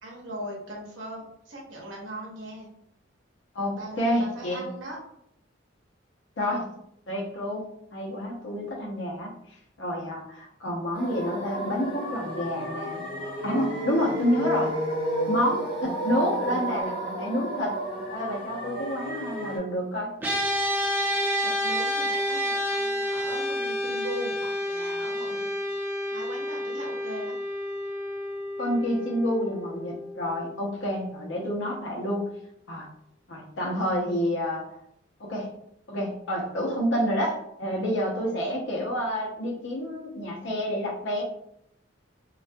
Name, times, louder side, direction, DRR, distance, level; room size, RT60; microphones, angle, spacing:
voice 1, 0.0-2.7 3.7-5.0 21.4-25.5 26.1-27.3, right 1 dB, 80° right, -2 dB, 0.7 m, -39 dB
voice 2, 3.5-4.7 6.4-6.7 7.1-9.3 9.8-13.0 13.4-14.7 15.3-17.8 18.1-20.1 28.6-32.3 32.7-32.9 33.3-34.7 35.2-35.5 35.9-41.2, equal, 75° left, -1 dB, 0.6 m, -29 dB
sound 1, 10.9-19.6, right 1 dB, 30° left, 0.7 m, -32 dB
sound 2, 20.2-31.7, equal, 10° right, 0.4 m, -30 dB
2.3 x 2.2 x 2.5 m, 0.74 s
head